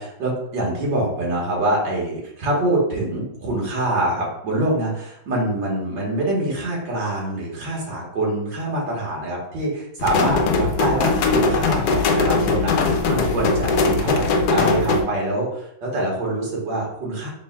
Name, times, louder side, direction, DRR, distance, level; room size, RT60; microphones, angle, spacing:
voice 1, 0.0-17.3, right 1 dB, 75° right, -3 dB, 1.9 m, -25 dB
sound 1, 10.0-15.0, left 3 dB, 70° left, 1.0 m, -20 dB
5.2 x 3.6 x 2.2 m, 0.78 s
omnidirectional pair, 2.0 m